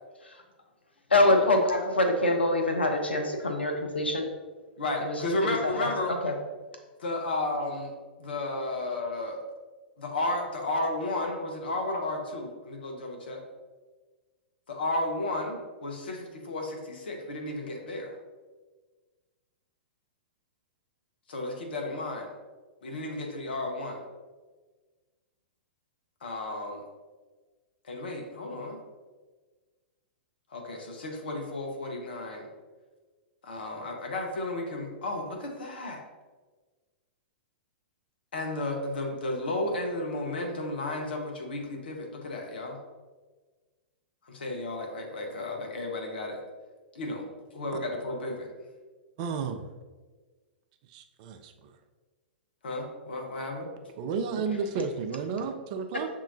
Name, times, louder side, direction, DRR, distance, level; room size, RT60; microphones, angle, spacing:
voice 1, 1.1-4.3 5.0-5.1 5.4-6.3, left 2 dB, 85° left, 4 dB, 0.6 m, -25 dB
voice 2, 4.8-6.2 7.0-7.9 8.2-9.4 10.0-13.4 14.7-18.2 21.3-22.3 22.8-24.0 26.2-26.8 27.9-28.8 30.5-32.5 33.4-36.0 38.3-42.8 44.3-46.4 46.9-47.3 47.5-48.5 52.6-53.7, left 2 dB, 65° left, 1 dB, 0.9 m, -33 dB
voice 3, 49.2-49.7 50.9-51.7 54.0-56.1, right 5 dB, 45° right, 7 dB, 0.4 m, -32 dB
7.0 x 2.8 x 2.6 m, 1.4 s
figure-of-eight pair, 105°, 6 cm